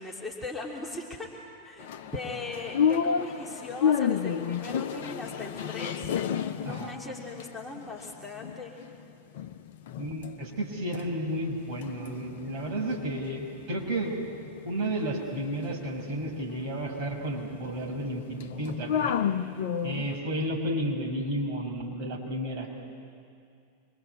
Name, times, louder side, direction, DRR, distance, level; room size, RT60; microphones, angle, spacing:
voice 1, 0.0-1.3 1.6-8.8, left 3 dB, 5° left, -4 dB, 3.0 m, -39 dB
sound 1, 1.8-9.0 9.3-10.3 10.6-20.2, left 8 dB, 55° left, 0.9 m, -32 dB
voice 2, 6.6-7.0 10.0-14.1 14.6-19.2 19.8-22.8, right 1 dB, 40° right, 0 dB, 5.9 m, -32 dB
26.5 x 24.0 x 8.3 m, 2.3 s
figure-of-eight pair, 90°, 0 cm